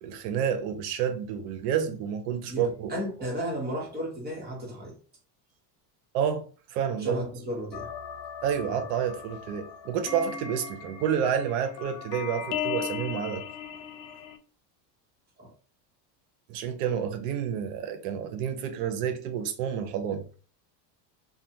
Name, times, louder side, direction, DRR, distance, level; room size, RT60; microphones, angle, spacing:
voice 1, 0.0-2.9 6.1-6.4 6.7-7.2 8.4-13.4 16.5-20.2, right 8 dB, 75° right, 0.7 m, -29 dB
voice 2, 2.5-5.0 7.0-7.9 8.6-8.8 15.4-15.5, equal, 20° right, 1.0 m, -34 dB
sound 1, 7.7-14.4, left 8 dB, 85° left, 0.7 m, -37 dB
2.4 x 2.2 x 2.7 m
supercardioid pair, 130°, 49 cm